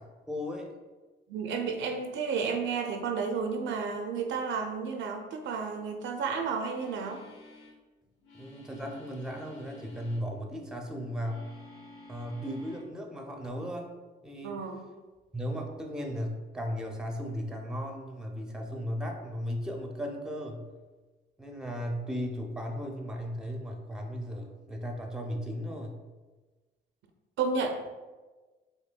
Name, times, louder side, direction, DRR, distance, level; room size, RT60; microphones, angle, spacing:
voice 1, 0.3-0.7 8.3-11.4 12.1-13.9 14.2-14.6 15.3-20.7 21.4-25.9, equal, 5° right, 1 dB, 0.5 m, -36 dB
voice 2, 1.3-7.2 14.4-14.9 27.4-27.9, right 5 dB, 70° right, 4 dB, 0.5 m, -32 dB
sound 1, 6.7-7.8 8.2-10.2 11.2-12.9 13.3-13.5, left 2 dB, 70° left, 0.9 m, -52 dB
4.3 x 2.7 x 2.2 m, 1.3 s
cardioid pair, 90°, 20 cm